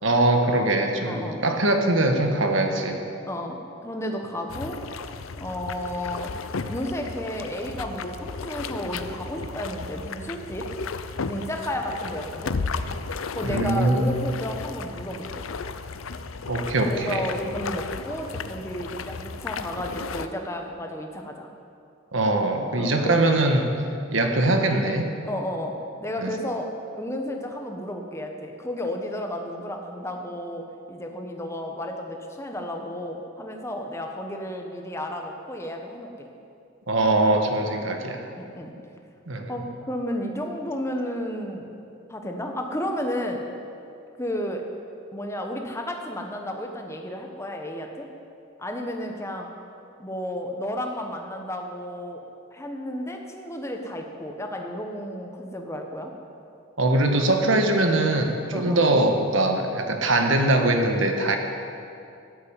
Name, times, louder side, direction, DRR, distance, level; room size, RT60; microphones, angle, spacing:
voice 1, 0.0-3.0 13.4-14.0 16.5-17.2 22.1-23.7 24.1-25.1 26.2-26.3 36.9-38.2 39.3-39.5 56.8-61.4, right 2 dB, 70° right, 4 dB, 1.5 m, -22 dB
voice 2, 1.0-1.4 3.3-4.8 5.4-6.3 6.7-10.7 11.2-12.5 13.3-15.5 16.9-21.5 22.8-23.2 25.3-25.7 26.0-36.3 38.4-38.7 39.5-41.7 42.1-43.4 44.2-44.6 45.1-48.1 48.6-49.5 50.0-52.2 52.5-56.1 58.5-58.8, left 1 dB, 15° left, 3 dB, 1.3 m, -32 dB
sound 1, 4.5-20.3, left 4 dB, 85° left, 0.6 m, -34 dB
13.0 x 8.7 x 9.0 m, 2.6 s
head